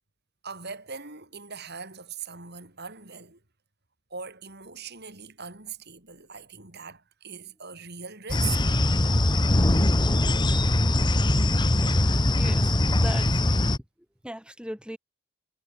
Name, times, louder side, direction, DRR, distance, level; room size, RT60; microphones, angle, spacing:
voice 1, 0.4-3.4 4.1-8.6, right 6 dB, 45° right, 6.5 m, -40 dB
sound 1, 8.3-13.8, left 1 dB, 20° left, 1.2 m, -22 dB
voice 2, 12.4-13.5 14.2-15.0, equal, 5° right, 4.9 m, -38 dB
head